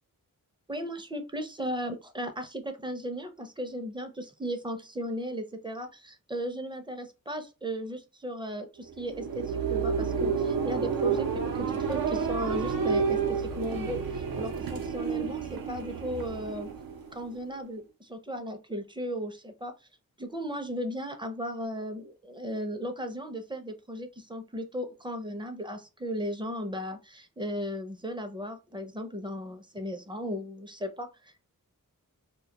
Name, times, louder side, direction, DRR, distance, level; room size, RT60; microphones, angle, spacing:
voice 1, 0.7-16.7 17.1-19.7 20.2-31.3, equal, 15° right, 6 dB, 0.4 m, -36 dB
sound 1, 8.9-17.5, right 5 dB, 85° right, 0.5 m, -30 dB
2.2 x 2.1 x 2.8 m, 0.29 s
wide cardioid pair, 60°, 34 cm